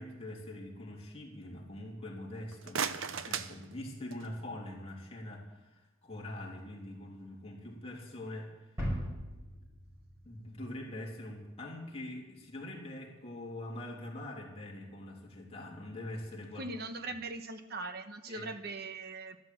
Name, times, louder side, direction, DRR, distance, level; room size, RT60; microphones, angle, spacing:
voice 1, 0.0-8.8 10.2-16.7 18.3-18.5, left 1 dB, 30° left, -2 dB, 3.0 m, -44 dB
sound 1, 2.4-4.4, right 7 dB, 80° right, 0.7 m, -38 dB
sound 2, 8.8-11.4, equal, 15° right, 5.3 m, -39 dB
voice 2, 16.5-19.4, right 2 dB, 50° right, 8 dB, 1.1 m, -40 dB
13.0 x 12.5 x 7.6 m, 1.1 s
head